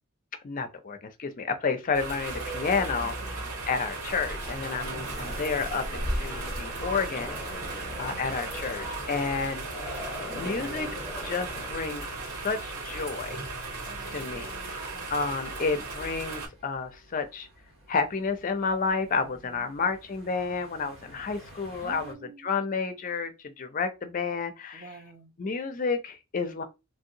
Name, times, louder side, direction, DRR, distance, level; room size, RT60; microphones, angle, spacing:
voice 1, 0.4-7.4 7.7-9.6 10.3-10.9 11.2-13.4 14.0-14.5 15.1-17.5 17.9-24.9 25.4-26.6, left 5 dB, 35° left, 0.4 m, -31 dB
sound 1, 1.9-16.5, right 3 dB, 85° right, 1.9 m, -37 dB
sound 2, 2.3-22.1, right 1 dB, 60° right, 1.1 m, -45 dB
voice 2, 3.0-3.5 7.5-7.9 13.9-15.1 19.2-19.6 21.8-22.5 24.7-25.3, right 3 dB, 40° right, 0.5 m, -49 dB
sound 3, 4.0-11.8, equal, 5° right, 0.9 m, -39 dB
3.1 x 2.7 x 2.7 m
head